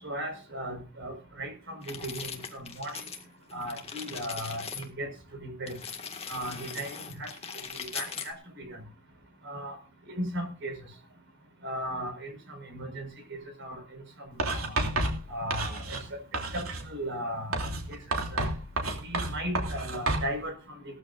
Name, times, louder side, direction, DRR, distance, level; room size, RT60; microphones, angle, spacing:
voice 1, 0.0-3.0 3.5-5.7 6.3-7.3 7.7-8.8 9.4-9.7 10.1-10.7 11.6-14.8 15.3-16.0 16.5-18.0 18.3-18.5 19.0-20.8, equal, 60° right, 6 dB, 5.1 m, -37 dB
sound 1, 1.8-3.3 3.5-4.9 5.7-8.3, left 6 dB, 30° left, 1.9 m, -40 dB
Writing, 14.4-16.1 16.3-16.9 17.5-20.3, right 2 dB, 85° right, 3.0 m, -30 dB
18.5 x 14.0 x 2.6 m, 0.36 s
head